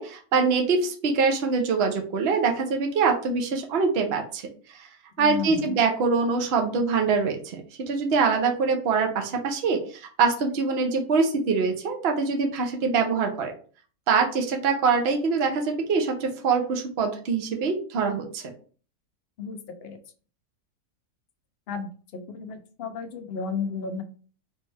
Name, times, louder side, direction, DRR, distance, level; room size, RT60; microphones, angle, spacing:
voice 1, 0.0-4.4 4.8-4.9 5.2-7.6 7.9-13.5 14.1-18.4, right 4 dB, 50° right, 3 dB, 0.9 m, -24 dB
voice 2, 5.2-5.8 19.4-20.0 21.7-24.0, left 5 dB, 60° left, 6 dB, 0.6 m, -33 dB
4.1 x 3.4 x 3.3 m, 0.41 s
omnidirectional pair, 1.7 m